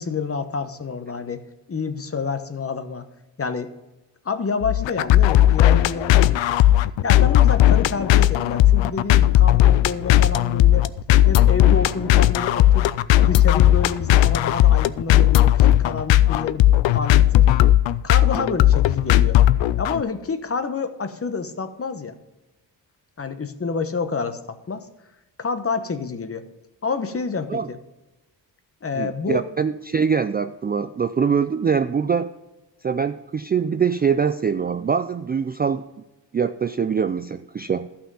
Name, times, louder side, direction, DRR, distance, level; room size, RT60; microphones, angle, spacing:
voice 1, 0.0-1.4 1.7-3.0 3.4-3.7 4.2-6.6 7.0-10.9 11.3-12.9 13.2-16.6 16.9-17.5 18.0-19.4 19.8-22.2 23.2-24.9 25.4-26.5 26.8-27.8 28.8-29.5, left 4 dB, 30° left, 10 dB, 1.0 m, -28 dB
sound 1, 4.6-20.0, left 13 dB, 80° left, 0.6 m, -16 dB
voice 2, 29.0-32.3 32.8-35.8 36.3-37.9, right 6 dB, 25° right, 10 dB, 0.3 m, -23 dB
12.5 x 5.7 x 5.5 m, 1.0 s
cardioid pair, 85°, 44 cm